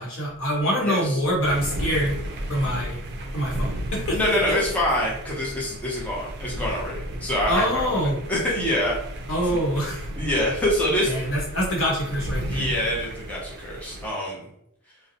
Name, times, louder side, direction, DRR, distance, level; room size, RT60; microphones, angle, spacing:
voice 1, 0.0-2.2 2.5-3.0 3.3-4.3 7.5-8.2 9.3-10.1 11.1-12.7, equal, 60° left, -3 dB, 0.9 m, -25 dB
voice 2, 0.8-1.2 4.1-7.9 8.3-9.0 9.5-9.6 10.2-11.1 12.5-14.5, left 1 dB, 5° left, -5 dB, 0.5 m, -25 dB
sound 1, 1.4-14.1, right 1 dB, 50° right, 0.4 m, -34 dB
2.7 x 2.0 x 2.7 m, 0.76 s
head